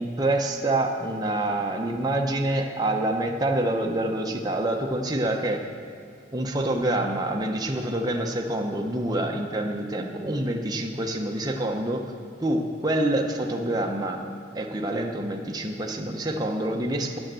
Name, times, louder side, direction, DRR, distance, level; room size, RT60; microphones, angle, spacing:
voice 1, 0.0-5.6 6.3-12.0 12.4-14.2 14.5-17.2, right 1 dB, 20° right, 1 dB, 0.7 m, -26 dB
9.2 x 7.1 x 7.6 m, 2.4 s
head